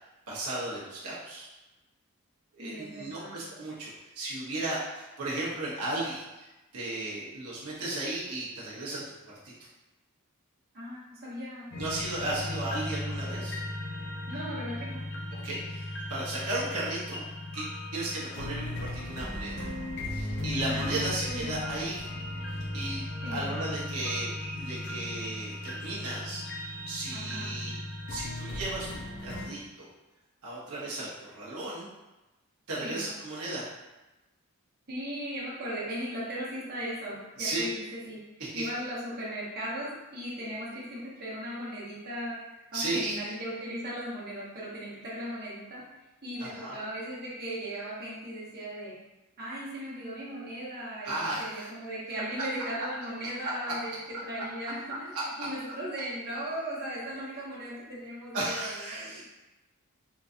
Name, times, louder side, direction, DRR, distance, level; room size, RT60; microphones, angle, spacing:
voice 1, 0.3-1.5 2.5-3.9 4.1-9.5 11.7-13.6 15.3-17.2 17.5-19.7 20.1-22.1 22.5-26.4 26.9-27.8 28.1-29.9 30.4-31.9 32.7-33.6 37.4-37.8 38.4-38.7 42.7-43.2 46.4-46.8 51.0-51.7 53.4-53.5 55.1-55.5 58.3-59.2, right 2 dB, 80° right, -7 dB, 0.8 m, -35 dB
voice 2, 2.6-3.4 10.7-11.6 14.3-15.0 20.6-21.6 23.2-23.4 27.1-27.5 32.8-33.0 34.9-38.2 38.5-42.4 42.7-45.8 46.2-49.0 49.4-59.2, equal, 45° right, -7 dB, 1.1 m, -37 dB
sound 1, 11.7-29.5, left 1 dB, 50° left, 0.6 m, -36 dB
3.8 x 2.6 x 2.5 m, 1.0 s
head